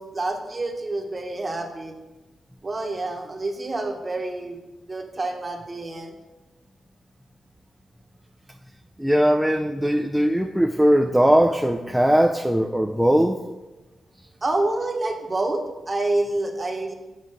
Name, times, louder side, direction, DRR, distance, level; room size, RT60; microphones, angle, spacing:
voice 1, 0.0-1.9 2.6-4.6 4.9-6.1 14.4-16.9, right 2 dB, 30° right, 4 dB, 1.1 m, -27 dB
voice 2, 9.0-13.4, equal, 5° right, 3 dB, 0.4 m, -19 dB
8.2 x 4.6 x 5.6 m, 1.1 s
cardioid pair, 110°, 0 cm